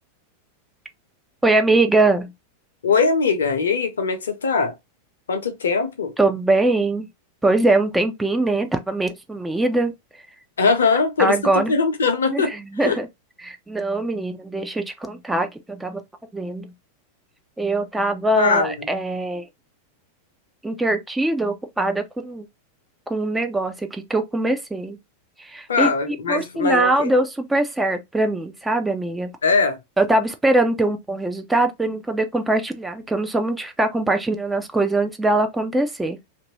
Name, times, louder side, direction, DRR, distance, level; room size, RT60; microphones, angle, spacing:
voice 1, 1.4-2.3 6.2-7.1 7.4-9.9 11.2-11.7 12.3-13.1 13.4-16.0 16.3-16.7 17.6-19.4 20.6-22.4 23.1-25.0 25.4-29.3 30.0-36.2, right 2 dB, 5° right, 0.4 m, -22 dB
voice 2, 2.8-4.7 5.3-6.1 10.6-11.3 11.7-12.5 12.8-13.0 18.4-18.9 25.7-27.1 29.4-29.8, left 4 dB, 65° left, 0.7 m, -21 dB
2.9 x 2.6 x 2.9 m
figure-of-eight pair, 90°, 0 cm